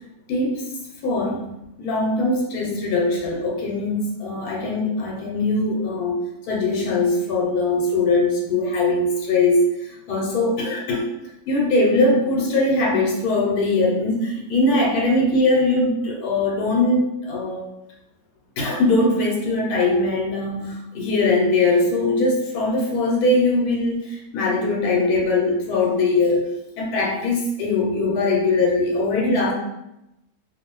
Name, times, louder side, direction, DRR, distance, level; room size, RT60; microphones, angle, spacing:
voice 1, 0.3-0.6 1.0-6.2 6.5-11.1 11.5-17.7 18.6-26.5 26.8-29.5, left 2 dB, 75° left, -2 dB, 1.2 m, -21 dB
2.6 x 2.5 x 2.9 m, 0.89 s
omnidirectional pair, 1.6 m